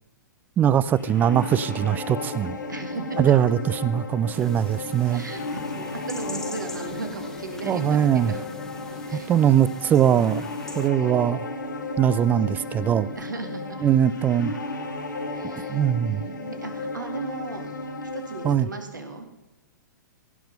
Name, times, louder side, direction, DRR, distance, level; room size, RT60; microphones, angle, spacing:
voice 1, 0.6-2.6 3.2-5.2 7.7-8.3 9.1-10.5 10.8-11.4 12.0-13.1 13.8-14.5 15.7-16.2 18.4-18.7, right 10 dB, 15° right, 18 dB, 0.3 m, -21 dB
sound 1, 0.9-18.5, left 2 dB, 75° left, 1.6 m, -34 dB
voice 2, 2.7-3.3 5.1-8.4 9.1-9.3 13.1-13.8 15.3-17.7 18.0-19.3, right 3 dB, 80° right, 5 dB, 2.1 m, -36 dB
sound 2, 4.3-10.9, left 2 dB, 5° left, 1.2 m, -43 dB
15.5 x 5.9 x 6.6 m, 1.0 s
figure-of-eight pair, 110°, 10 cm